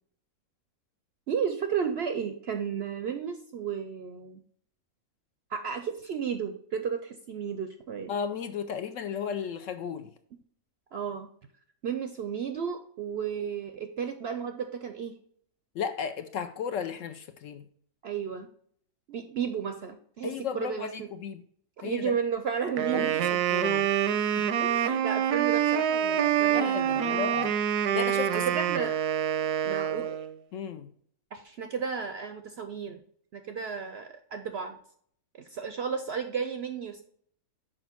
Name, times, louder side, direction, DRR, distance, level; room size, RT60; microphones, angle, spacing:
voice 1, 1.3-4.4 5.5-8.1 10.9-11.3 11.8-15.2 18.0-18.5 19.1-21.1 21.8-23.4 24.6-27.3 28.3-29.0 29.6-30.2 31.3-33.0 33.3-34.8 35.4-37.0, right 7 dB, 65° right, 7 dB, 0.6 m, -33 dB
voice 2, 8.1-10.1 15.7-17.7 20.2-21.4 21.8-22.2 22.9-23.1 23.5-23.9 24.4-24.7 26.5-28.4 30.5-30.9, left 7 dB, 70° left, 9 dB, 0.8 m, -34 dB
Wind instrument woodwind instrument, 22.8-30.4, right 9 dB, 85° right, 1.1 m, -26 dB
6.2 x 5.1 x 4.4 m, 0.62 s
omnidirectional pair, 1.6 m